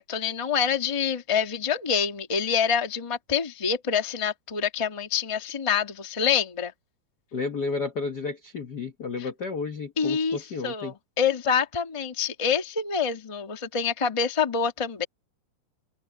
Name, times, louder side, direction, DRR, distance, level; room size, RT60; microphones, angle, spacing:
voice 1, 0.0-6.7 9.2-9.3 10.0-15.0, left 6 dB, 30° left, 0.6 m, -26 dB
voice 2, 7.3-10.9, left 4 dB, 70° left, 0.9 m, -32 dB
open air
omnidirectional pair, 3.8 m